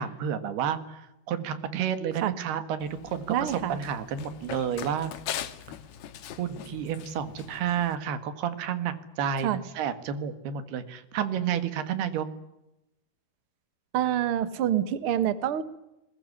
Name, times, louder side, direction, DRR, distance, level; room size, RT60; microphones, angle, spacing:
voice 1, 0.0-5.1 6.4-12.3, right 8 dB, 90° right, 11 dB, 3.9 m, -31 dB
Run, 2.8-8.0, left 10 dB, 90° left, 3.4 m, -41 dB
voice 2, 3.3-3.8 9.4-9.6 13.9-15.6, right 10 dB, 55° right, 13 dB, 1.6 m, -26 dB
22.0 x 21.5 x 9.9 m, 0.89 s
omnidirectional pair, 4.4 m